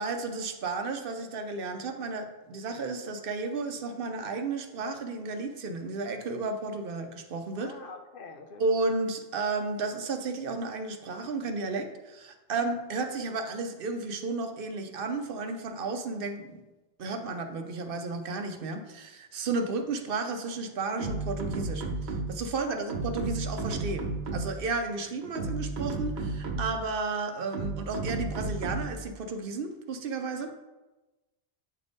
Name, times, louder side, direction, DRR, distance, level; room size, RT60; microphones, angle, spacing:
voice 1, 0.0-7.7 8.6-16.6 17.0-24.1 24.3-30.5, right 3 dB, 65° right, 6 dB, 0.8 m, -33 dB
voice 2, 7.6-8.6 22.7-22.8, left 4 dB, 65° left, 6 dB, 0.8 m, -44 dB
sound 1, 21.0-22.5 22.9-24.7 25.2-26.9 27.5-29.1, right 3 dB, 80° right, 1.1 m, -33 dB
8.3 x 3.4 x 4.0 m, 1.1 s
omnidirectional pair, 1.0 m